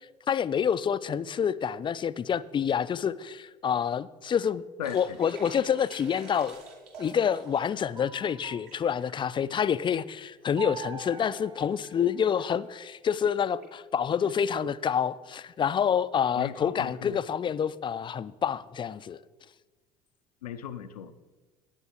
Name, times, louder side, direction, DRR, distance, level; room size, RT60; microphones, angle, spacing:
voice 1, 0.3-4.6 4.9-6.6 7.0-19.2, left 8 dB, 25° left, 0.4 m, -28 dB
voice 2, 4.8-5.2 16.4-17.1 20.4-21.1, left 9 dB, 80° left, 0.5 m, -37 dB
sound 1, 4.8-7.9 8.2-9.4 10.0-10.1 10.3-10.6 10.9-11.0 11.6-11.9 12.2-12.4 13.1-13.2 13.6-13.7, right 3 dB, 60° right, 2.6 m, -48 dB
sound 2, 7.0-9.3 10.6-12.8, right 7 dB, 20° right, 0.8 m, -44 dB
17.0 x 9.6 x 2.9 m
figure-of-eight pair, 60°, 20 cm